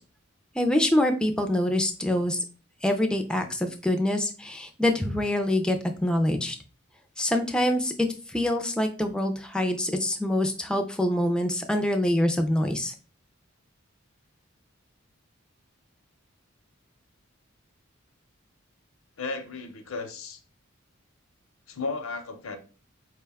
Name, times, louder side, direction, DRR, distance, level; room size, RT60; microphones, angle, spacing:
voice 1, 0.6-2.4 2.8-5.8 6.0-6.6 7.2-12.9, left 1 dB, 5° left, 5 dB, 0.3 m, -25 dB
voice 2, 19.2-20.4 21.7-22.6, left 3 dB, 80° left, 7 dB, 0.7 m, -34 dB
4.6 x 2.2 x 3.4 m, 0.36 s
head